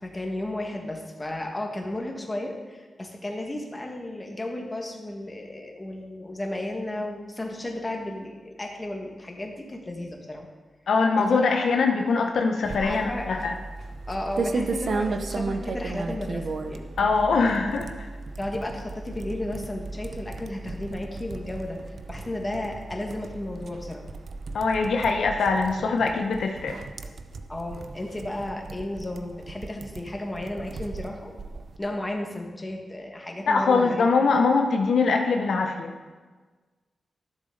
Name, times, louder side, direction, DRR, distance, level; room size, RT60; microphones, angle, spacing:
voice 1, 0.0-10.5 11.2-11.3 12.8-13.3 14.1-17.1 18.4-24.0 27.5-31.3 31.8-34.1, left 1 dB, 20° left, 1 dB, 1.7 m, -34 dB
voice 2, 10.9-13.5 17.0-18.1 24.5-26.8 33.5-35.9, left 4 dB, 80° left, 3 dB, 0.8 m, -22 dB
sound 1, 12.6-31.8, right 3 dB, 65° right, 0.6 m, -35 dB
12.5 x 7.3 x 3.9 m, 1.4 s
cardioid pair, 80°, 0 cm